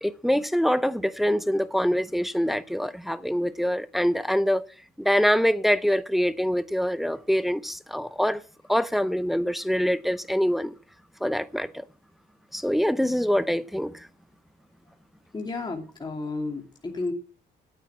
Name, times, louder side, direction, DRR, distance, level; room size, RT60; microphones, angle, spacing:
voice 1, 0.0-4.6 5.0-8.4 8.7-10.7 11.2-11.8 12.5-14.1, equal, ahead, 0.7 m, -24 dB
voice 2, 15.3-17.1, left 3 dB, 20° left, 2.6 m, -32 dB
9.1 x 8.7 x 7.3 m
cardioid pair, 90°, 20 cm